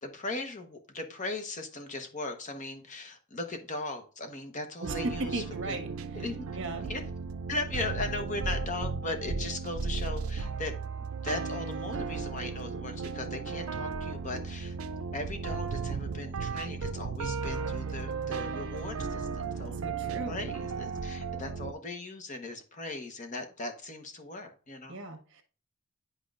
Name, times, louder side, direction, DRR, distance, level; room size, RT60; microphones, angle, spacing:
voice 1, 0.0-5.8 6.1-6.5 6.8-7.0 7.5-10.7 11.0-14.8 15.1-19.8 20.0-25.0, left 2 dB, 35° left, 5 dB, 1.1 m, -38 dB
voice 2, 4.8-5.9 6.5-6.9 19.8-20.3 24.9-25.4, right 2 dB, 60° right, 5 dB, 1.3 m, -36 dB
sound 1, 4.8-21.7, right 4 dB, 80° right, 0.5 m, -35 dB
10.5 x 4.8 x 2.5 m, 0.39 s
head